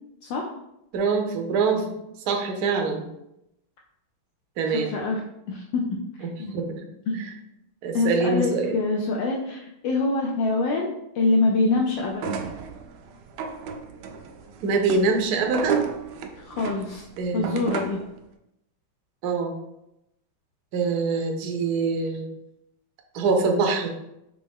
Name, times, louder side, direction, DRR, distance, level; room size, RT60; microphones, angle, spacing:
voice 1, 0.9-1.9 2.3-3.0 4.6-4.9 6.5-6.8 7.1-7.3 7.8-8.7 14.6-15.8 17.2-17.7 19.2-19.5 20.7-22.2 23.1-23.9, right 4 dB, 65° right, 3 dB, 1.0 m, -24 dB
voice 2, 4.7-5.2 5.5-6.0 6.4-6.5 7.1-7.2 7.9-12.4 16.4-17.0 17.3-18.0, left 3 dB, 75° left, 0 dB, 1.2 m, -25 dB
sound 1, 12.1-18.1, right 6 dB, 85° right, 1.4 m, -33 dB
5.2 x 2.9 x 3.5 m, 0.84 s
omnidirectional pair, 2.3 m